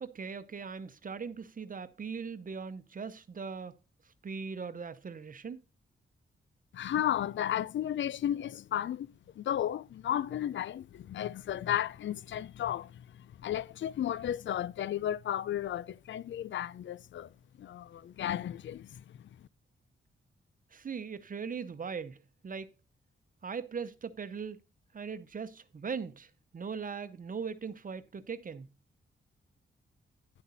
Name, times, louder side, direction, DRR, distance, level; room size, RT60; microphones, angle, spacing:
voice 1, 0.0-3.7 4.2-5.6 20.7-22.2 22.4-22.7 23.4-24.6 24.9-28.7, right 5 dB, 45° right, 0.8 m, -39 dB
voice 2, 6.7-9.1 9.4-17.3 17.6-19.0, left 11 dB, 70° left, 0.5 m, -34 dB
11.0 x 8.1 x 4.0 m
wide cardioid pair, 110°, 20 cm